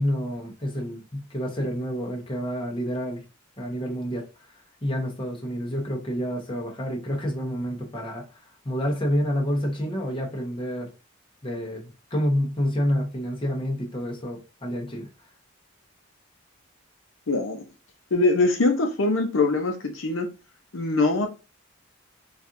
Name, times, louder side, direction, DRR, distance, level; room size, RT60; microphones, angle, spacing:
voice 1, 0.0-3.2 3.6-4.2 4.8-8.2 8.6-10.9 11.4-15.1, equal, 25° left, 0.9 m, -28 dB
voice 2, 17.3-17.6 18.1-20.3 20.7-21.3, left 3 dB, 80° left, 0.7 m, -23 dB
4.2 x 2.5 x 2.5 m
head